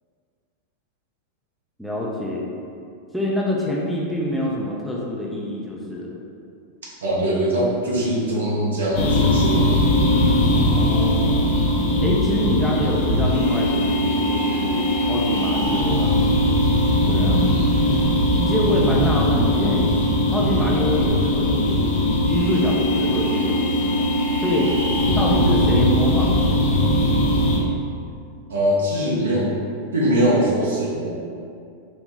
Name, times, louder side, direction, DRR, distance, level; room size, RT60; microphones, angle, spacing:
voice 1, 1.8-2.5 3.1-6.2 10.5-11.5 12.0-16.2 17.1-17.4 18.3-19.8 20.3-24.0 24.4-24.7 25.2-26.8, left 1 dB, ahead, -5 dB, 0.3 m, -25 dB
voice 2, 7.0-9.9 17.0-17.8 24.9-25.3 28.5-29.5 29.9-31.1, equal, 65° right, -5 dB, 0.6 m, -22 dB
sound 1, 8.9-27.6, left 1 dB, 55° left, 0.6 m, -20 dB
3.1 x 2.0 x 2.7 m, 2.4 s
figure-of-eight pair, 90°, 0 cm